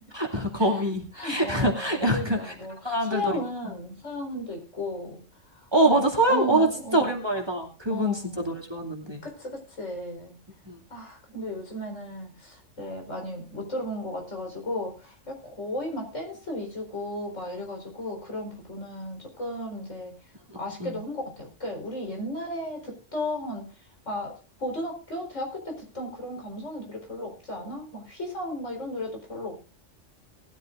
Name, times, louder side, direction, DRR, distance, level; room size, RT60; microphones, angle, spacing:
voice 1, 0.1-2.5 2.8-3.3 5.7-6.7 6.9-9.2 10.7-10.8 20.5-21.0, right 1 dB, 20° right, 2 dB, 2.5 m, -25 dB
voice 2, 1.1-5.2 5.6-7.1 7.9-8.7 9.2-10.4 10.9-20.2 20.5-23.7 24.1-29.5, left 1 dB, 70° left, 2 dB, 4.8 m, -35 dB
19.5 x 12.5 x 2.5 m, 0.32 s
omnidirectional pair, 1.3 m